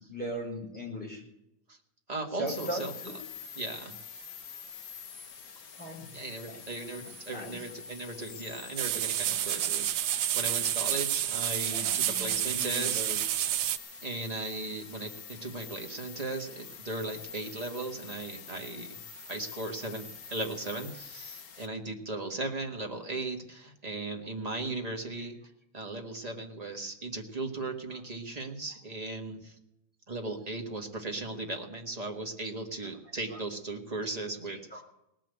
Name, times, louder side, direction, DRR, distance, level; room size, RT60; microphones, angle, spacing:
voice 1, 0.1-1.2 2.4-3.1 5.8-6.1 6.5-6.6 7.0-7.6 11.7-13.2 25.2-25.3 32.8-32.9 33.3-33.4 34.5-34.8, equal, 5° left, -2 dB, 4.3 m, -39 dB
voice 2, 2.1-2.9 3.5-3.9 6.1-13.3 14.0-19.0 19.3-25.4 25.7-29.5 30.1-34.8, right 2 dB, 30° right, 2 dB, 0.7 m, -37 dB
sound 1, 2.5-21.7, left 6 dB, 80° left, 0.8 m, -46 dB
sound 2, 8.8-13.8, right 12 dB, 80° right, 2.2 m, -29 dB
18.5 x 7.6 x 9.1 m, 0.84 s
omnidirectional pair, 3.3 m